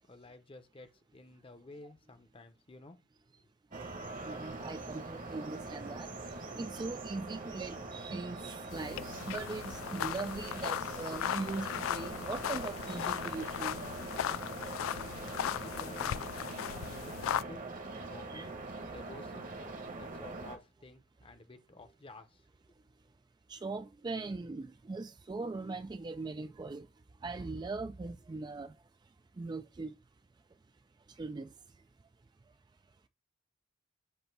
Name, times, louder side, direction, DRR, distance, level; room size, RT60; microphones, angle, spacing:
voice 1, 0.1-3.0 15.4-17.6 18.0-18.5 18.9-19.5 19.7-22.5, left 2 dB, 25° left, 0.8 m, -52 dB
sound 1, 3.7-20.6, right 3 dB, 40° right, 1.1 m, -43 dB
voice 2, 4.2-6.1 6.6-13.8 16.7-16.9 18.3-18.5 23.5-26.9 27.2-28.7 29.4-29.9 31.2-31.5, right 3 dB, 20° right, 0.3 m, -40 dB
sound 2, 8.7-17.4, left 10 dB, 90° left, 0.3 m, -37 dB
8.0 x 2.8 x 6.0 m
head